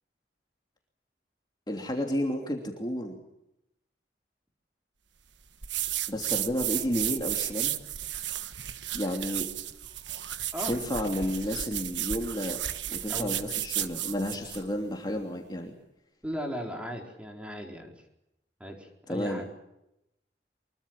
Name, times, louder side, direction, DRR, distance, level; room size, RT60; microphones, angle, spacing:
voice 1, 1.7-3.2 6.1-7.7 8.9-9.4 10.7-12.6 12.9-15.7 19.1-19.4, equal, 25° left, 1 dB, 3.1 m, -31 dB
sound 1, 5.6-14.7, right 12 dB, 80° right, 1.4 m, -33 dB
voice 2, 13.1-13.5 16.2-17.9 18.6-19.5, equal, 5° right, 2 dB, 4.3 m, -37 dB
25.0 x 23.0 x 7.4 m, 0.85 s
head